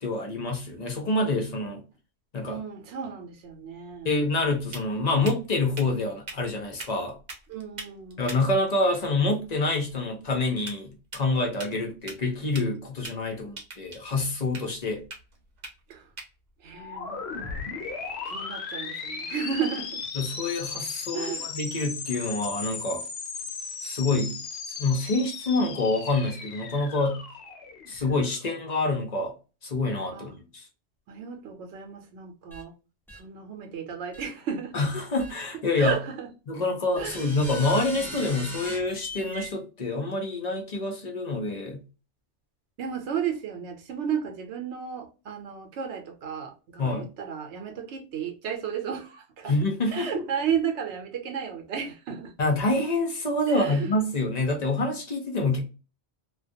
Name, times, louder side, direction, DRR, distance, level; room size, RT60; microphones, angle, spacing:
voice 1, 0.0-1.8 2.3-2.6 4.0-7.2 8.2-15.0 20.2-23.0 23.8-24.4 24.8-27.3 27.9-29.3 29.6-30.4 34.7-36.0 36.5-41.8 46.8-47.1 49.5-50.2 52.4-55.6, left 2 dB, 45° left, 0.6 m, -27 dB
voice 2, 2.4-4.1 7.5-8.2 15.9-16.1 16.6-17.7 18.2-20.1 21.1-21.5 30.1-30.4 31.1-32.7 33.1-34.8 35.8-36.3 37.0-37.3 42.8-49.6 49.9-52.3 53.5-53.9, right 7 dB, 85° right, 0.9 m, -33 dB
sound 1, 3.4-18.2, right 3 dB, 45° right, 0.7 m, -46 dB
sound 2, 16.7-28.4, left 5 dB, 75° left, 0.9 m, -37 dB
sound 3, 32.5-32.6 33.1-33.2 34.1-34.3 35.2-35.3 35.9-36.0 37.0-39.5, left 1 dB, 5° left, 0.5 m, -38 dB
2.3 x 2.2 x 2.6 m
omnidirectional pair, 1.1 m